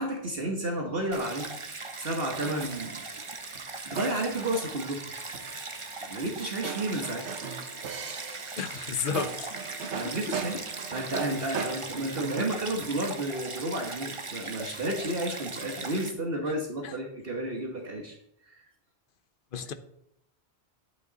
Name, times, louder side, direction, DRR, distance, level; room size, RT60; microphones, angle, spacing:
voice 1, 0.0-1.5 2.0-3.0 3.9-5.1 6.0-7.3 9.9-10.6 10.9-18.1 18.4-18.7, right 1 dB, 60° right, 2 dB, 1.6 m, -32 dB
Stream, 1.1-16.1, right 3 dB, 30° right, 0.9 m, -39 dB
sound 1, 2.4-14.2, right 6 dB, 90° right, 1.3 m, -40 dB
voice 2, 8.6-9.5 10.0-10.1 16.8-16.9 19.5-19.7, left 6 dB, 55° left, 10 dB, 0.9 m, -32 dB
11.5 x 8.7 x 4.0 m, 0.72 s
omnidirectional pair, 1.1 m